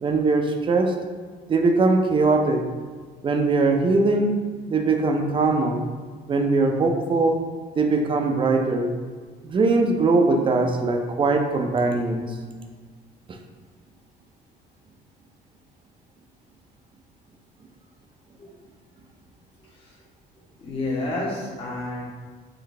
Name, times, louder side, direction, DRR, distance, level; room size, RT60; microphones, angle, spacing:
voice 1, 0.0-0.9 1.5-2.6 3.2-4.4 4.7-5.8 6.3-7.4 7.7-8.9 9.4-12.3, right 3 dB, 30° right, 4 dB, 0.4 m, -21 dB
voice 2, 19.6-20.0 20.6-22.0, left 2 dB, 35° left, -6 dB, 1.0 m, -30 dB
3.9 x 2.6 x 3.2 m, 1.5 s
cardioid pair, 110°, 17 cm